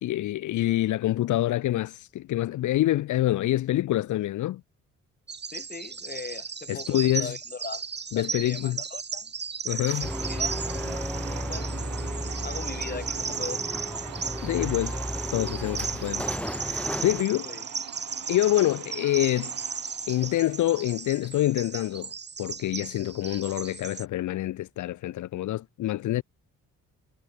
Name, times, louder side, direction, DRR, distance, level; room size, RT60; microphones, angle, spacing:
voice 1, 0.0-4.6 6.7-7.3 8.1-8.8 9.6-10.1 14.4-15.0 15.3-16.3 16.6-17.6 18.3-19.5 20.1-22.1 22.4-26.2, left 14 dB, 75° left, 1.1 m, -26 dB
Bird vocalization bird call bird song, 5.3-24.0, right 5 dB, 35° right, 3.7 m, -36 dB
voice 2, 5.5-7.8 8.1-9.3 9.7-10.7 11.3-11.7 12.4-13.6 17.4-17.7, left 4 dB, 30° left, 6.4 m, -40 dB
sound 1, 9.8-21.2, right 15 dB, 90° right, 3.3 m, -43 dB
sound 2, 10.0-17.2, left 1 dB, 5° left, 1.7 m, -34 dB
cardioid pair, 90°, 30 cm